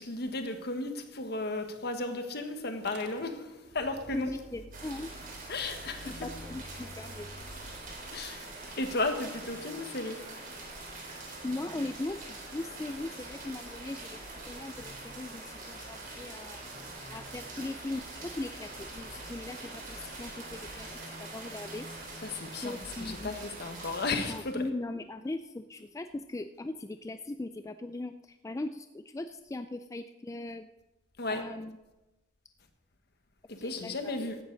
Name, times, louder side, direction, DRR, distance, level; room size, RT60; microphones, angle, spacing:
voice 1, 0.0-3.4 3.7-4.3 5.5-6.1 8.1-8.5 8.8-10.2 22.2-24.6 31.2-31.4 33.5-34.4, left 2 dB, 60° left, 6 dB, 1.4 m, -34 dB
Motor vehicle (road) / Engine starting, 2.7-7.8, right 1 dB, 65° right, 1.6 m, -49 dB
voice 2, 4.1-5.1 6.1-7.5 11.4-14.2 14.4-16.6 17.1-20.9 21.2-22.2 22.6-23.4 24.3-30.7 31.3-31.8 33.6-34.3, left 2 dB, 15° left, 9 dB, 0.3 m, -39 dB
sound 1, 4.7-24.4, right 2 dB, 45° right, 3.3 m, -44 dB
15.5 x 11.0 x 4.0 m, 1.1 s
head